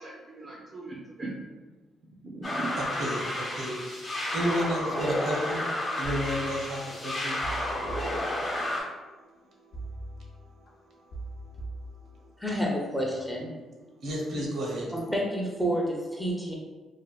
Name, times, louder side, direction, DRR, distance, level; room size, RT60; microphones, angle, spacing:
voice 1, 0.0-1.6 2.0-2.7, right 2 dB, 40° right, -4 dB, 0.5 m, -39 dB
sound 1, 2.4-8.8, left 1 dB, 30° left, 0.9 m, -31 dB
voice 2, 2.8-5.7 6.0-10.4 10.9-11.0 11.3-11.6 12.0-12.3 14.0-14.9, equal, 65° right, -3 dB, 0.8 m, -34 dB
sound 2, 6.0-7.0 7.4-8.9 9.7-10.7 11.1-12.6 13.0-13.4, right 2 dB, 65° left, 0.5 m, -41 dB
voice 3, 12.4-13.5 14.9-16.5, equal, 5° left, -2 dB, 0.6 m, -29 dB
3.3 x 2.2 x 2.3 m, 1.3 s
cardioid pair, 90°, 0 cm